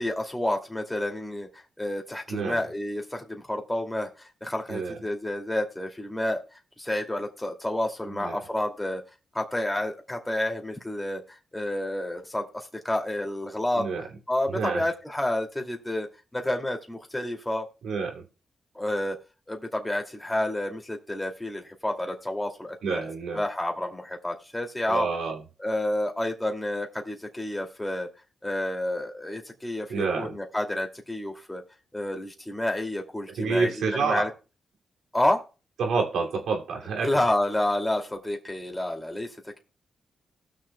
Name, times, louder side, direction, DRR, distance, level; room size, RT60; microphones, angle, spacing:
voice 1, 0.0-1.5 1.8-4.1 4.4-6.4 6.8-9.0 9.3-11.2 11.5-13.9 14.3-16.1 16.3-17.7 18.8-19.2 19.5-23.0 23.3-25.1 25.6-28.1 28.4-31.6 31.9-33.7 34.0-34.3 35.1-35.4 37.0-39.3, left 1 dB, 15° left, 2.3 m, -29 dB
voice 2, 2.3-2.6 4.7-5.0 8.1-8.4 13.7-14.1 14.5-14.9 17.8-18.2 22.8-23.4 24.9-25.4 29.9-30.4 33.3-34.3 35.8-37.1, right 4 dB, 85° right, 2.5 m, -28 dB
19.0 x 6.5 x 2.2 m
cardioid pair, 60°, 0 cm